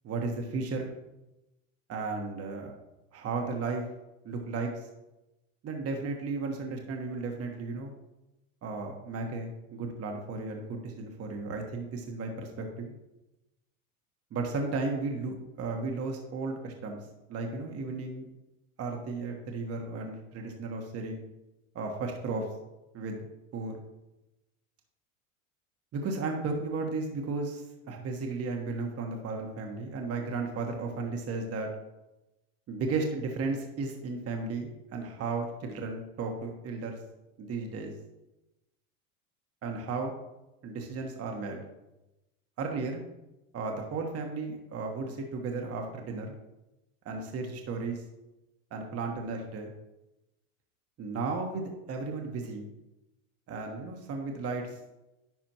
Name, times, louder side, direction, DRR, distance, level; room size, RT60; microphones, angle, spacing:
voice 1, 0.0-1.0 1.9-2.7 3.1-3.9 4.2-4.9 5.6-7.9 8.6-13.0 14.3-17.0 17.3-18.3 18.8-21.2 21.7-22.5 22.9-23.2 23.5-23.8 25.9-31.7 32.7-37.0 37.4-37.9 39.6-40.1 40.6-41.6 42.6-43.0 43.5-46.4 47.0-48.0 48.7-49.7 51.0-52.7 53.5-54.8, right 3 dB, 35° right, 2 dB, 1.3 m, -34 dB
10.5 x 4.9 x 2.9 m, 0.96 s
hypercardioid pair, 95°, 41 cm